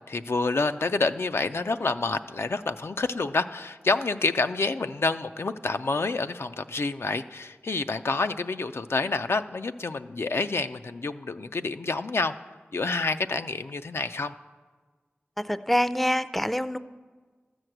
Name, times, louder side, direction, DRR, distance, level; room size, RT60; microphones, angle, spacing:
voice 1, 0.0-12.3 12.7-14.4, left 3 dB, 80° left, 8 dB, 0.4 m, -28 dB
voice 2, 15.4-16.8, equal, 5° left, 14 dB, 0.4 m, -25 dB
12.5 x 6.1 x 7.8 m, 1.4 s
wide cardioid pair, 40°, 4 cm